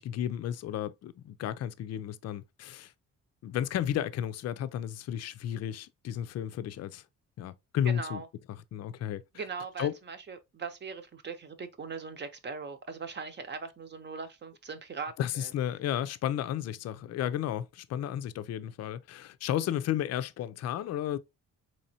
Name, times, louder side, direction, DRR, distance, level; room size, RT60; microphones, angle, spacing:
voice 1, 0.0-2.9 3.4-7.0 7.4-8.2 8.7-9.2 9.8-9.9 15.2-21.2, left 10 dB, 55° left, 0.5 m, -33 dB
voice 2, 7.8-8.3 9.3-15.5, right 5 dB, 35° right, 0.8 m, -40 dB
4.2 x 3.1 x 2.8 m
cardioid pair, 90°, 30 cm